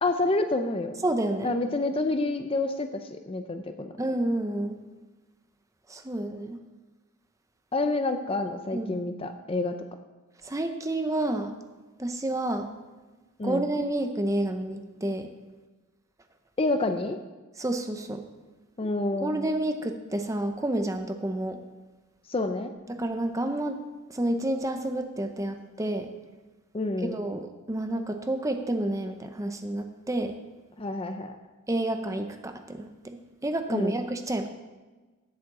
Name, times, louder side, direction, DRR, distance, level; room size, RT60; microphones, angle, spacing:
voice 1, 0.0-1.0 1.4-3.9 7.7-9.8 13.4-13.7 16.6-17.2 18.8-19.4 22.3-22.7 26.7-27.2 30.8-31.3 33.7-34.0, left 2 dB, 25° left, 8 dB, 0.5 m, -28 dB
voice 2, 1.0-1.5 4.0-4.7 5.9-6.6 8.7-8.9 10.5-11.5 12.0-12.7 13.4-15.3 17.6-18.2 19.2-21.6 23.0-23.8 24.1-26.1 27.0-30.3 31.7-34.5, right 1 dB, 15° right, 6 dB, 0.6 m, -29 dB
8.4 x 7.4 x 7.6 m, 1.2 s
head